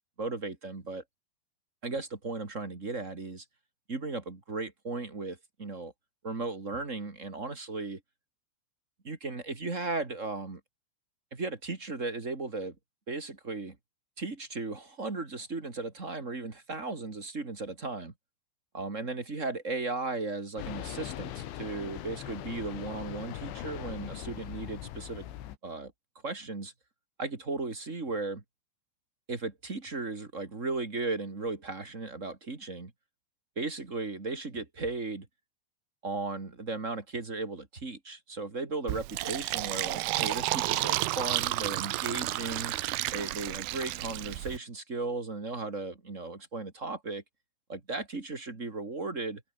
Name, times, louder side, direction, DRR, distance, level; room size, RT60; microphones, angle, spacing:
voice 1, 0.2-1.0 1.8-3.4 3.9-5.9 6.2-8.0 9.0-10.6 11.3-12.7 13.1-13.8 14.2-18.1 18.7-25.3 25.6-25.9 26.2-26.7 27.2-28.4 29.3-32.9 33.6-35.3 36.0-42.7 43.1-47.2 47.7-49.4, right 3 dB, 25° right, 2.0 m, -36 dB
sound 1, 20.6-25.6, left 12 dB, 80° left, 4.3 m, -40 dB
Fill (with liquid), 38.9-44.6, right 18 dB, 80° right, 2.3 m, -31 dB
omnidirectional pair, 5.4 m